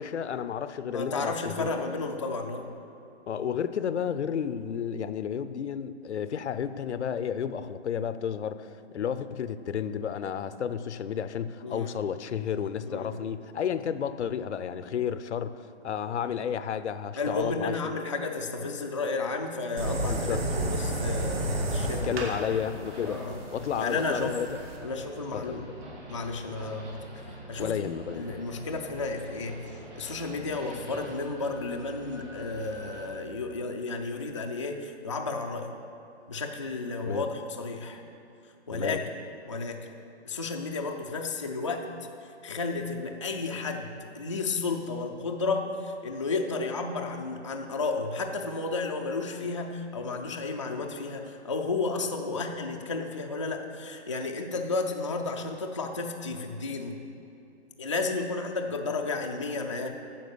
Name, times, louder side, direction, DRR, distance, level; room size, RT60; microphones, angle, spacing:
voice 1, 0.0-1.7 3.3-17.9 20.0-20.4 22.0-23.2 23.5-24.6 25.3-25.6 27.6-28.3 37.0-37.3 38.7-39.0, left 8 dB, 75° left, 13 dB, 0.6 m, -32 dB
voice 2, 0.9-2.7 11.6-11.9 12.9-13.3 17.2-22.1 23.1-23.4 23.8-24.4 24.8-25.7 26.1-27.9 28.1-29.6 30.0-35.7 36.3-38.0 38.7-39.0 39.5-39.9 40.3-41.9 42.4-57.0 57.8-59.9, left 3 dB, 30° left, 2 dB, 0.4 m, -32 dB
sound 1, 19.8-24.8, right 1 dB, 60° right, 2.1 m, -31 dB
sound 2, 20.4-33.1, right 1 dB, 85° right, 2.7 m, -45 dB
9.4 x 7.1 x 6.9 m, 2.6 s
hypercardioid pair, 170°, 34 cm